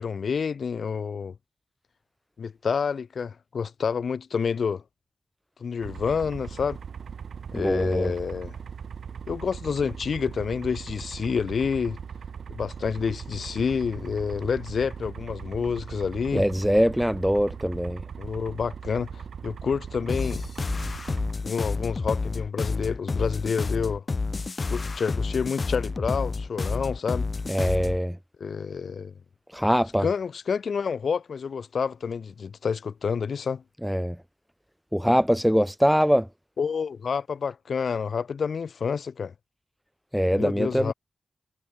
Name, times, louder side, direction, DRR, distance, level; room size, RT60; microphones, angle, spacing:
voice 1, 0.0-1.3 2.4-4.8 5.6-6.8 7.5-8.5 9.3-12.0 12.5-16.5 18.2-20.5 21.4-24.0 24.7-27.3 28.4-29.1 30.0-33.6 36.6-39.3 40.3-40.9, left 6 dB, 70° left, 5.9 m, -28 dB
sound 1, 5.8-21.3, right 6 dB, 80° right, 4.7 m, -39 dB
voice 2, 7.5-8.1 16.3-18.0 27.5-28.2 29.5-30.1 33.8-34.2 34.9-36.3 40.1-40.9, equal, ahead, 0.9 m, -23 dB
sound 2, 20.1-28.0, left 3 dB, 40° left, 4.7 m, -29 dB
wide cardioid pair, 90°, 0 cm